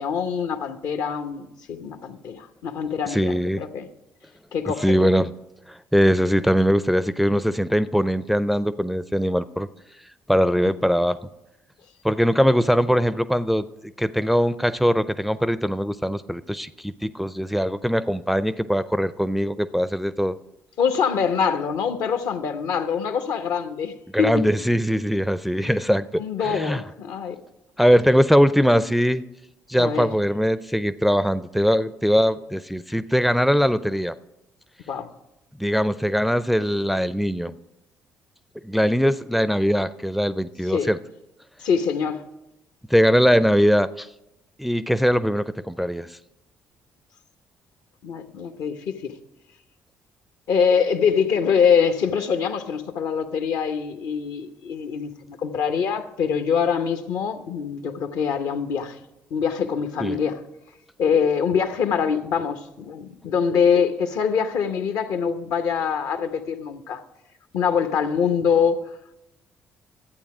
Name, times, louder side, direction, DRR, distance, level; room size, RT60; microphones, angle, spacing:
voice 1, 0.0-3.9 4.5-5.1 20.8-24.3 25.6-25.8 26.2-27.4 29.8-30.1 34.9-35.1 40.7-40.9 41.6-42.2 48.0-49.2 50.5-59.0 59.3-60.4 61.0-67.0 67.5-68.8, left 6 dB, 65° left, 0.9 m, -24 dB
voice 2, 3.1-3.6 4.8-5.3 5.7-9.7 10.3-11.2 12.0-13.7 14.0-20.4 24.1-26.8 27.8-29.2 29.7-34.1 35.6-37.5 38.6-41.0 42.9-44.1 44.6-46.2 60.0-60.2, equal, ahead, 0.4 m, -21 dB
12.0 x 8.5 x 4.8 m
hypercardioid pair, 50°, 7 cm